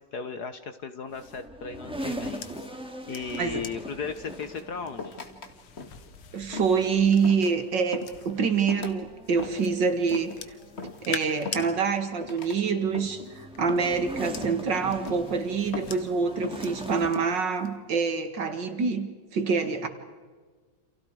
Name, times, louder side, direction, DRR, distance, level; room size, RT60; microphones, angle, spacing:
voice 1, 0.0-2.4 3.1-5.2, left 5 dB, 55° left, 9 dB, 1.4 m, -36 dB
sound 1, 1.1-8.6 9.2-11.7 12.9-17.2 17.5-17.9, left 8 dB, 85° left, 2.2 m, -45 dB
sound 2, 1.1-17.2, equal, 5° right, 2.0 m, -42 dB
sound 3, 4.3-5.5 5.8-6.1 6.5-6.9 7.2-7.6 7.9-8.2 8.7-9.0 9.4-9.7 10.1-10.4 10.8-11.1 11.5-11.9 12.2-12.6 12.9-13.3 13.7-14.0 14.4-14.7 15.1-15.4 15.7-16.1 16.4-16.7 17.2-17.4, left 4 dB, 30° left, 1.9 m, -39 dB
voice 2, 6.3-10.4 11.0-19.9, right 5 dB, 55° right, 7 dB, 2.4 m, -26 dB
29.0 x 28.5 x 4.8 m, 1.4 s
omnidirectional pair, 2.4 m